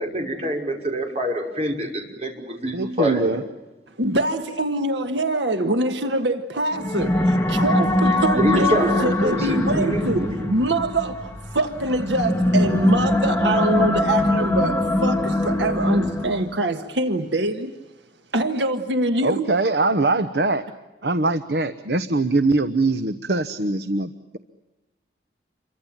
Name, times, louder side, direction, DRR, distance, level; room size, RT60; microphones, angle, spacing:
voice 1, 0.0-3.4 8.3-10.5, right 1 dB, 35° right, 5.6 m, -26 dB
voice 2, 2.7-3.4 19.2-20.6 21.0-24.4, right 2 dB, 60° right, 1.1 m, -22 dB
voice 3, 4.0-17.7 18.3-19.5, right 2 dB, 85° right, 1.6 m, -24 dB
sound 1, 6.7-16.6, left 1 dB, 10° left, 1.9 m, -22 dB
28.5 x 24.0 x 7.5 m
head